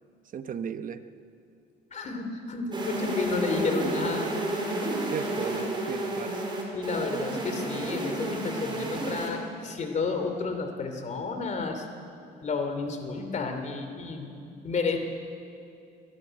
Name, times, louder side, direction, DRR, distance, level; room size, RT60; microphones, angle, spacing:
voice 1, 0.2-1.0 5.0-6.5, right 8 dB, 50° right, 10 dB, 1.0 m, -35 dB
voice 2, 1.9-4.3 6.7-11.9 12.4-15.0, left 4 dB, 40° left, 6 dB, 2.9 m, -31 dB
sound 1, 2.7-9.3, right 1 dB, 25° right, 4.5 m, -31 dB
22.5 x 12.5 x 9.0 m, 2.6 s
cardioid pair, 115°, 18 cm